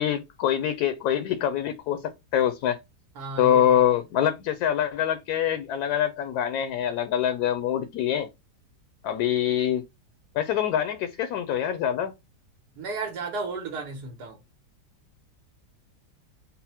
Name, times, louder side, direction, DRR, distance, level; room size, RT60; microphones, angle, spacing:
voice 1, 0.0-2.8 3.4-8.3 9.0-9.8 10.3-12.1, left 10 dB, 75° left, 1.0 m, -25 dB
voice 2, 3.2-3.6 12.8-14.4, right 4 dB, 75° right, 1.5 m, -33 dB
4.1 x 2.1 x 4.1 m
omnidirectional pair, 1.8 m